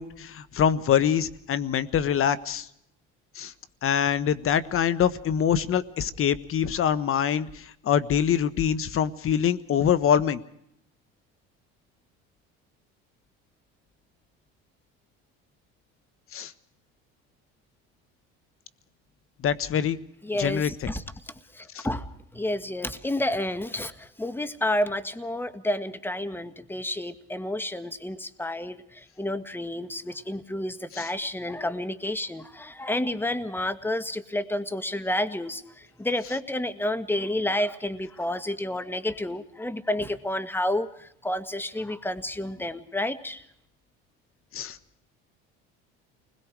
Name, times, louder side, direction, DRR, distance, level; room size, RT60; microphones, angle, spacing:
voice 1, 0.0-2.7 3.3-3.5 3.8-10.4 16.3-16.5 19.4-20.0 20.3-20.9 21.7-21.9 30.9-31.1 44.5-44.8, left 8 dB, 45° left, 15 dB, 1.4 m, -24 dB
voice 2, 20.2-21.0 21.5-22.1 22.3-43.4, left 1 dB, 5° left, 12 dB, 1.5 m, -30 dB
29.5 x 21.0 x 4.8 m, 0.75 s
supercardioid pair, 90°, 30 cm